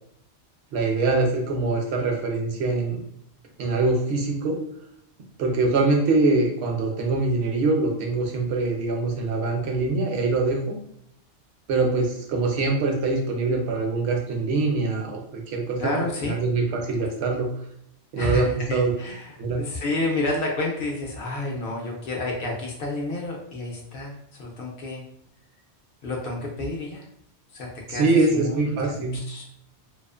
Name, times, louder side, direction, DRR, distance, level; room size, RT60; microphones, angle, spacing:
voice 1, 0.7-3.0 3.6-4.6 5.4-10.8 11.7-15.8 16.2-17.5 18.1-18.9 19.4-19.6 27.9-29.2, right 3 dB, 75° right, 1 dB, 0.8 m, -23 dB
voice 2, 15.8-16.4 18.1-25.0 26.0-27.1 27.5-29.0 29.3-29.5, left 2 dB, 65° left, 0 dB, 0.7 m, -30 dB
2.4 x 2.4 x 2.3 m, 0.72 s
omnidirectional pair, 1.1 m